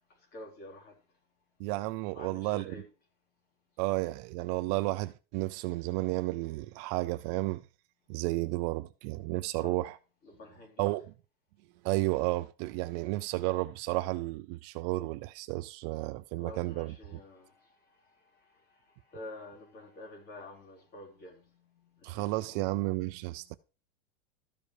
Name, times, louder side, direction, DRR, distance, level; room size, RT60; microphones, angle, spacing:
voice 1, 0.3-0.9 2.1-2.8 9.6-9.8 10.2-11.0 16.4-17.5 19.1-22.7 23.3-23.5, left 2 dB, 35° left, 4.0 m, -48 dB
voice 2, 1.6-2.8 3.8-7.7 8.1-10.0 10.8-11.1 11.8-17.2 22.0-23.5, right 20 dB, 45° right, 0.5 m, -32 dB
14.0 x 5.2 x 4.8 m
supercardioid pair, 150°, 30 cm